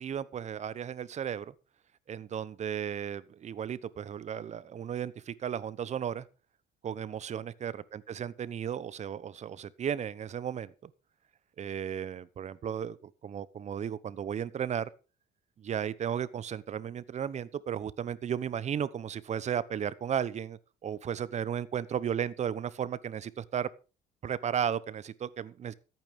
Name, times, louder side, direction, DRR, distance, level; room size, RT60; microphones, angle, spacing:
voice 1, 0.0-1.5 2.1-6.2 6.8-10.9 11.6-14.9 15.6-23.7 24.2-25.7, right 8 dB, 40° right, 18 dB, 0.9 m, -34 dB
14.0 x 9.0 x 5.2 m, 0.33 s
cardioid pair, 110°, 17 cm